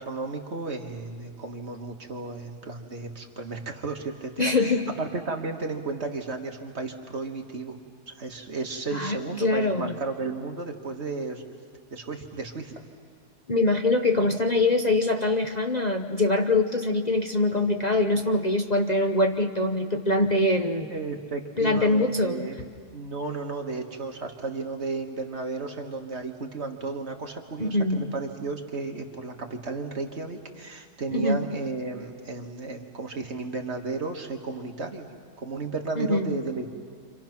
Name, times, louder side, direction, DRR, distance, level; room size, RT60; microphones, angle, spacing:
voice 1, 0.0-4.7 5.0-7.8 8.1-11.4 11.9-12.8 20.9-35.1 35.4-36.7, right 3 dB, 45° right, 3 dB, 1.8 m, -33 dB
voice 2, 4.4-4.8 8.9-9.9 13.5-20.9 21.6-22.5 27.6-28.1 31.1-31.4 36.0-36.4, left 2 dB, 35° left, 4 dB, 0.7 m, -23 dB
29.0 x 26.5 x 5.9 m, 2.1 s
omnidirectional pair, 1.7 m